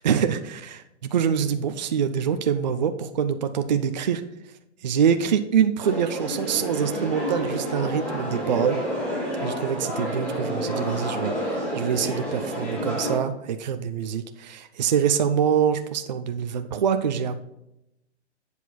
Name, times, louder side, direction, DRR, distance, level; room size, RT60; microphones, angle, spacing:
voice 1, 0.0-4.2 4.8-8.8 9.4-17.4, right 8 dB, 40° right, 8 dB, 0.5 m, -25 dB
sound 1, 5.8-13.2, equal, 5° left, 1.9 m, -29 dB
8.2 x 7.0 x 4.2 m, 0.85 s
hypercardioid pair, 170°, 34 cm